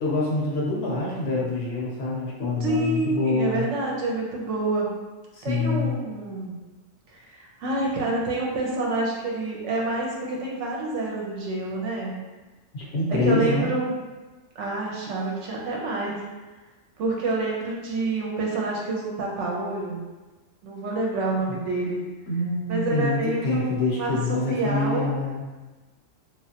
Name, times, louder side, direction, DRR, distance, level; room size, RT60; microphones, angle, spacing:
voice 1, 0.0-3.7 5.3-5.9 12.7-13.7 21.5-21.6 22.3-25.4, left 2 dB, 60° left, -5 dB, 0.8 m, -26 dB
voice 2, 2.6-4.9 5.4-6.6 7.1-12.1 13.1-14.0 14.6-16.3 17.0-20.0 20.6-22.0 22.7-24.2 24.5-25.1, right 2 dB, 70° right, -2 dB, 0.9 m, -27 dB
3.1 x 2.4 x 2.8 m, 1.2 s
omnidirectional pair, 1.4 m